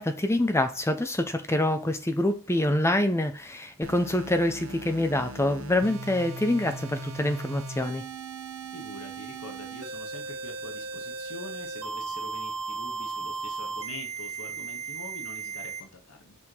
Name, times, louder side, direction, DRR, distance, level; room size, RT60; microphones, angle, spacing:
voice 1, 0.0-8.0, left 1 dB, 10° left, 0.8 m, -26 dB
sound 1, 3.8-15.8, right 4 dB, 75° right, 1.3 m, -37 dB
voice 2, 8.7-16.4, left 2 dB, 75° left, 1.6 m, -45 dB
6.1 x 6.0 x 4.6 m
head